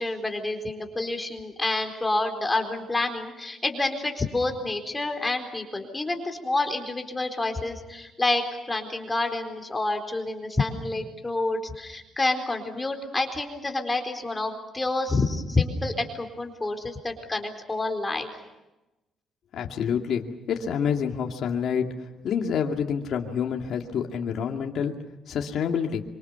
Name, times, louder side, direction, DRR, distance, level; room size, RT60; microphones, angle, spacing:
voice 1, 0.0-18.3, left 2 dB, 20° left, 5 dB, 4.2 m, -28 dB
voice 2, 19.5-21.9 22.2-24.9 25.3-26.0, left 7 dB, 70° left, 2 dB, 2.3 m, -27 dB
25.5 x 25.0 x 6.9 m, 1.0 s
cardioid pair, 90°, 0 cm